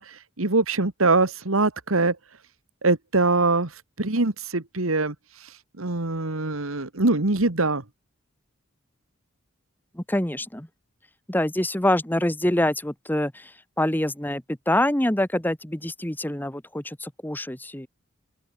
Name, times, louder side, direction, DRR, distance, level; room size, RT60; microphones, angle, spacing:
voice 1, 0.0-2.2 2.8-7.8, right 3 dB, 85° right, 2.0 m, -23 dB
voice 2, 9.9-10.7 11.3-17.9, left 1 dB, 10° left, 1.2 m, -25 dB
open air
head